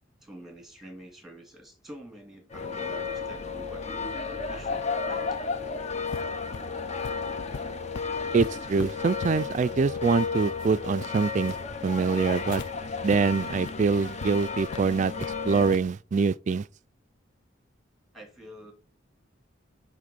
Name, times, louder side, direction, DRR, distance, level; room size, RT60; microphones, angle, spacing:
voice 1, 0.2-3.9 4.2-5.4 18.1-18.7, right 1 dB, ahead, 2.1 m, -47 dB
sound 1, 2.5-15.8, left 4 dB, 35° left, 0.7 m, -33 dB
sound 2, 6.1-12.7 13.1-13.2 13.6-13.7 14.2-14.3 14.7-15.3 15.7-15.9, left 4 dB, 75° left, 0.5 m, -41 dB
voice 2, 8.3-11.5 11.8-12.6 13.0-15.1 15.5-16.6, right 5 dB, 40° right, 0.3 m, -24 dB
8.7 x 3.5 x 6.7 m
head